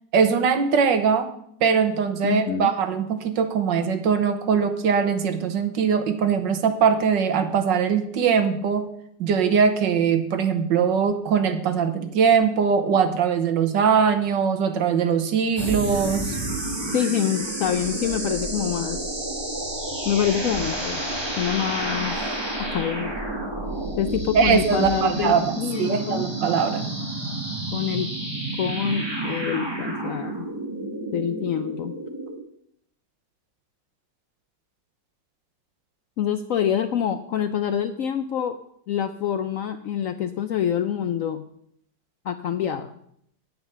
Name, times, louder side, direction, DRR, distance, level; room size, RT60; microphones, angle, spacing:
voice 1, 0.1-1.3 1.6-8.9 9.2-16.4 24.3-26.9, right 6 dB, 80° right, 8 dB, 1.7 m, -21 dB
voice 2, 2.2-2.7 16.9-19.0 20.0-21.0 21.4-22.1 22.6-23.1 24.0-26.3 27.7-28.1 28.6-30.5 31.1-31.9 36.2-38.6 38.9-41.4 42.2-42.9, left 9 dB, 70° left, 10 dB, 0.8 m, -26 dB
sound 1, 15.6-32.4, right 2 dB, 15° right, 1.9 m, -30 dB
9.1 x 8.0 x 6.8 m, 0.71 s
omnidirectional pair, 1.9 m